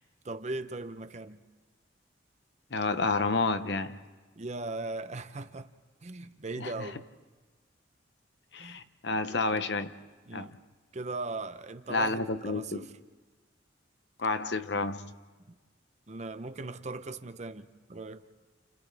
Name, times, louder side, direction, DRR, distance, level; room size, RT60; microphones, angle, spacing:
voice 1, 0.2-1.4 4.4-5.7 6.0-7.0 8.6-8.8 10.3-10.6 10.9-12.9 16.1-18.3, right 2 dB, 40° right, 0.7 m, -39 dB
voice 2, 2.7-4.0 6.6-6.9 8.5-9.9 10.3-10.5 11.9-12.9 14.2-15.0, left 3 dB, 65° left, 0.9 m, -30 dB
29.5 x 29.5 x 3.4 m
head